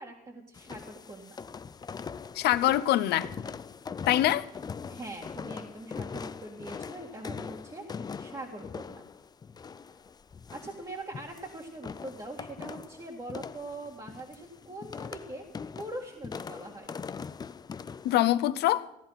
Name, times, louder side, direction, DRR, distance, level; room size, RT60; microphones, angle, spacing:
voice 1, 0.0-1.4 4.9-9.0 10.5-15.4 15.8-16.9, right 2 dB, 25° right, 2.2 m, -42 dB
sound 1, 0.5-18.3, left 5 dB, 25° left, 0.5 m, -42 dB
voice 2, 2.3-3.3 4.1-4.5 18.0-18.9, left 14 dB, 80° left, 0.8 m, -24 dB
15.5 x 11.0 x 5.9 m
cardioid pair, 110°, 17 cm